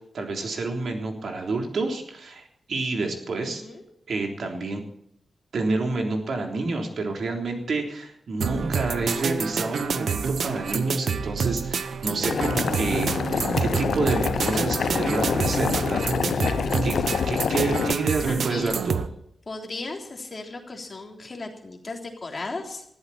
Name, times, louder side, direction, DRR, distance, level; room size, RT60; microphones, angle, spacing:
voice 1, 0.1-3.6 4.1-4.8 5.5-13.2 13.6-16.0 16.4-16.5 16.8-17.0 17.3-19.0, right 3 dB, 65° right, 2 dB, 3.5 m, -28 dB
voice 2, 3.4-3.8 18.2-18.7 19.5-22.9, left 3 dB, 35° left, 2 dB, 3.5 m, -36 dB
sound 1, 8.4-19.1, right 6 dB, 80° right, 1.0 m, -28 dB
Boiling, 12.2-17.9, left 6 dB, 85° left, 0.6 m, -26 dB
20.5 x 14.5 x 4.3 m, 0.73 s
wide cardioid pair, 165°, 0 cm